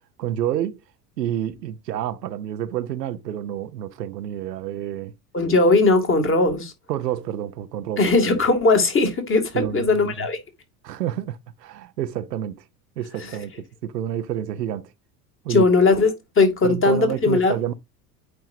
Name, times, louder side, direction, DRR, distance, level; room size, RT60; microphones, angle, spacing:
voice 1, 0.2-0.8 1.2-5.1 6.9-8.0 9.5-10.3 10.8-12.6 13.0-13.5 13.8-14.9 15.4-15.7 16.6-17.7, right 11 dB, 90° right, 0.7 m, -29 dB
voice 2, 5.3-6.7 8.0-10.4 13.2-13.4 15.5-17.6, left 3 dB, 25° left, 2.2 m, -19 dB
9.2 x 4.5 x 2.6 m
hypercardioid pair, 80°, 48 cm